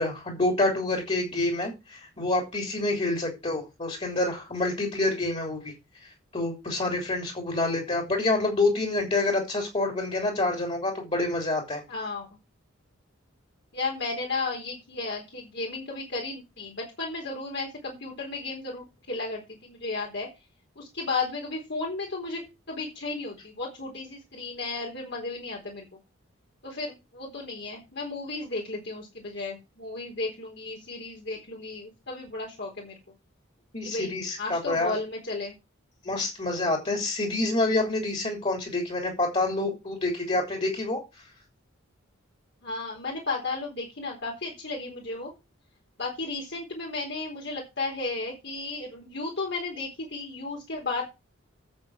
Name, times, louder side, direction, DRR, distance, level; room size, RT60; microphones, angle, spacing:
voice 1, 0.0-5.7 6.3-11.8 33.7-34.9 36.0-41.0, left 2 dB, 30° left, 3 dB, 3.4 m, -27 dB
voice 2, 11.9-12.3 13.7-20.3 20.8-22.4 22.7-25.8 26.6-33.0 33.8-34.1 34.4-35.6 42.6-45.3 46.0-51.0, left 3 dB, 55° left, -2 dB, 4.1 m, -34 dB
8.7 x 8.0 x 6.1 m, 0.25 s
head